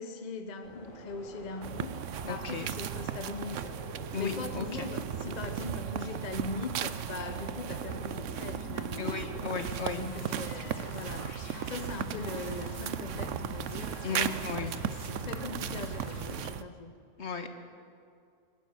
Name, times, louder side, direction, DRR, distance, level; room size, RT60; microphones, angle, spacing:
voice 1, 0.0-9.1 9.9-17.0, left 3 dB, 40° left, 8 dB, 0.9 m, -41 dB
sound 1, 0.6-16.4, left 2 dB, 80° left, 3.0 m, -46 dB
sound 2, 1.6-16.6, right 9 dB, 75° right, 1.0 m, -36 dB
voice 2, 2.3-2.7 4.1-4.9 9.0-10.0 14.0-14.7 17.2-17.5, left 5 dB, 60° left, 6 dB, 1.8 m, -35 dB
23.0 x 12.0 x 9.4 m, 2.4 s
omnidirectional pair, 1.3 m